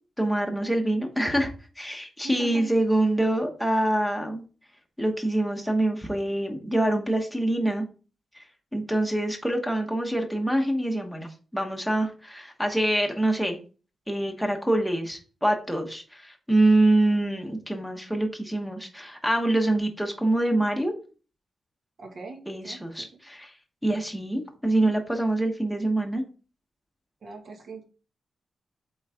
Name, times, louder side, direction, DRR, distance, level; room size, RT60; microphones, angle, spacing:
voice 1, 0.2-4.4 5.0-7.8 8.3-8.4 8.7-13.6 14.1-20.9 22.5-23.5 23.8-26.2, right 1 dB, ahead, 3 dB, 1.2 m, -25 dB
voice 2, 2.2-2.7 22.0-23.1 27.2-27.8, right 3 dB, 50° right, 1 dB, 1.9 m, -40 dB
8.1 x 3.9 x 3.6 m, 0.36 s
wide cardioid pair, 175°, 0 cm